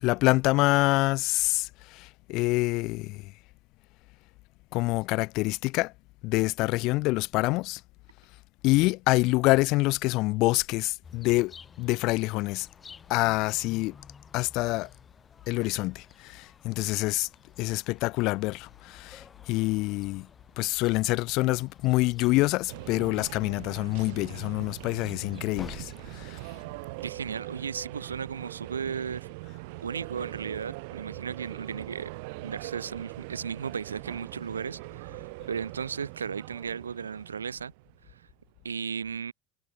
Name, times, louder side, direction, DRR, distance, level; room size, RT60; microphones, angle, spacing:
voice 1, 0.0-3.3 4.7-5.9 6.2-7.8 8.6-12.7 13.1-14.0 14.3-14.9 15.5-17.3 17.6-20.3 20.6-26.4, left 22 dB, 55° left, 0.9 m, -26 dB
sound 1, 11.0-26.3, left 6 dB, 25° left, 5.6 m, -52 dB
sound 2, 22.7-38.5, right 26 dB, 65° right, 5.0 m, -42 dB
voice 2, 27.0-29.3 29.8-32.1 32.4-37.7 38.6-39.3, right 6 dB, 85° right, 2.1 m, -35 dB
hypercardioid pair, 75°, 0 cm